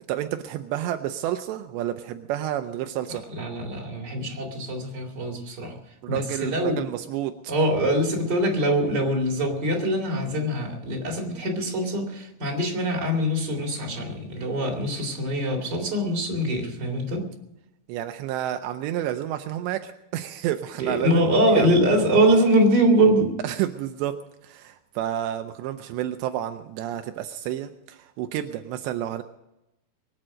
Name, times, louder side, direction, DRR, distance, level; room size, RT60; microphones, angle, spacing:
voice 1, 0.1-3.2 6.0-7.5 17.9-21.7 23.4-24.2 24.4-29.2, right 12 dB, 90° right, 7 dB, 2.4 m, -30 dB
voice 2, 3.4-5.8 6.1-6.8 7.5-17.2 20.8-23.3, right 1 dB, 25° right, 1 dB, 3.0 m, -23 dB
23.0 x 8.8 x 6.4 m, 0.90 s
omnidirectional pair, 5.9 m